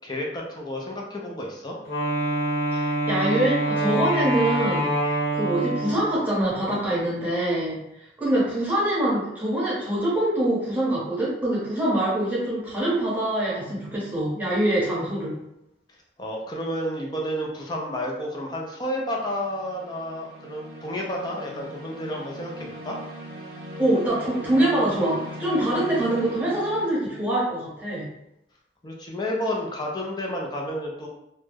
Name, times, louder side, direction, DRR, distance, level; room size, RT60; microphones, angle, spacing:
voice 1, 0.0-1.8 16.2-23.0 28.8-31.1, equal, 25° left, -1 dB, 0.4 m, -31 dB
Wind instrument woodwind instrument, 1.8-6.2, right 1 dB, 60° left, 1.0 m, -25 dB
voice 2, 2.7-7.8 8.2-15.4 23.8-28.1, right 1 dB, 10° right, -8 dB, 0.8 m, -24 dB
sound 1, 12.7-13.1 19.0-26.8, equal, 55° right, 0.7 m, -40 dB
2.2 x 2.0 x 3.2 m, 0.82 s
head